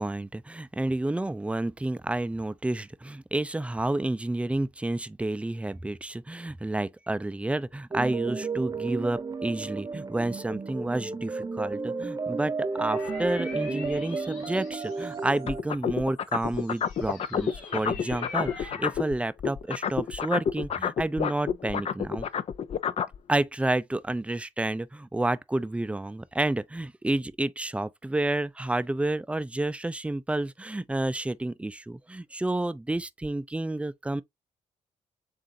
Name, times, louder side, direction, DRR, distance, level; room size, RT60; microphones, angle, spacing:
voice 1, 0.0-22.3 23.3-34.2, right 2 dB, 10° right, 0.5 m, -30 dB
sound 1, 7.9-15.6, right 4 dB, 30° right, 0.9 m, -33 dB
sound 2, 12.7-15.6 16.2-19.1, left 4 dB, 85° left, 1.9 m, -44 dB
sound 3, 15.5-19.1 19.4-23.2, left 7 dB, 55° left, 0.5 m, -28 dB
7.5 x 2.5 x 2.7 m
supercardioid pair, 60°, 13 cm